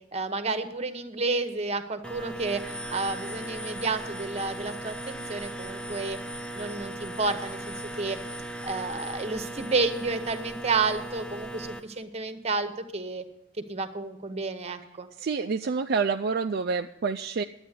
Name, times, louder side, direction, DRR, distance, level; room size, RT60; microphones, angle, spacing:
voice 1, 0.1-6.2 6.5-8.2 8.6-13.2 13.7-15.1, right 3 dB, 30° right, 9 dB, 1.0 m, -31 dB
sound 1, 2.0-11.8, right 1 dB, 5° left, 0.6 m, -38 dB
voice 2, 15.2-17.4, right 5 dB, 50° right, 6 dB, 0.4 m, -28 dB
11.0 x 8.8 x 8.2 m, 0.84 s
head